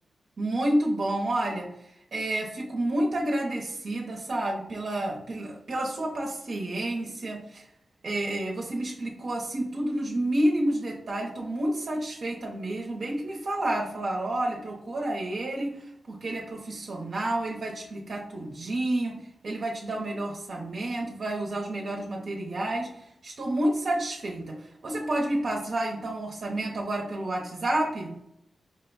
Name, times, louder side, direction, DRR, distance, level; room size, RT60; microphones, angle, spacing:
voice 1, 0.4-7.7 8.0-19.1 19.4-28.1, right 1 dB, 65° right, -2 dB, 0.8 m, -30 dB
5.1 x 2.2 x 3.9 m, 0.78 s
wide cardioid pair, 85°, 0 cm